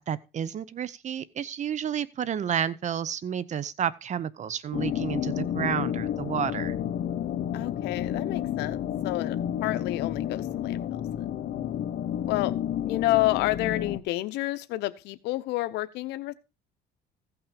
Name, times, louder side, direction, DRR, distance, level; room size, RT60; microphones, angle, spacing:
voice 1, 0.0-6.7, right 8 dB, 45° right, 0.8 m, -31 dB
sound 1, 4.7-14.0, left 10 dB, 60° left, 1.1 m, -31 dB
voice 2, 7.5-8.8 9.0-10.8 12.3-12.5 12.9-16.3, left 18 dB, 90° left, 0.9 m, -29 dB
15.5 x 5.9 x 5.2 m
cardioid pair, 110°, 17 cm